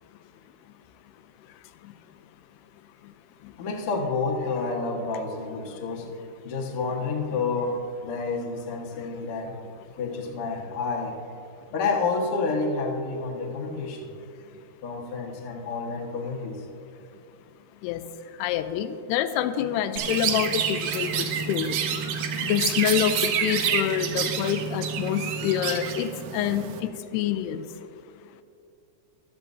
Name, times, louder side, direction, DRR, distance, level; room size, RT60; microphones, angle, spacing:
voice 1, 3.6-9.5 10.0-11.2 11.7-14.1 14.8-16.6, left 4 dB, 55° left, -2 dB, 1.6 m, -29 dB
voice 2, 18.4-21.8 22.4-26.7 27.1-27.6, left 10 dB, 85° left, 10 dB, 2.6 m, -26 dB
Chirp tweet, 20.0-26.8, right 7 dB, 75° right, 2.3 m, -28 dB
16.0 x 12.0 x 2.7 m, 2.6 s
omnidirectional pair, 4.7 m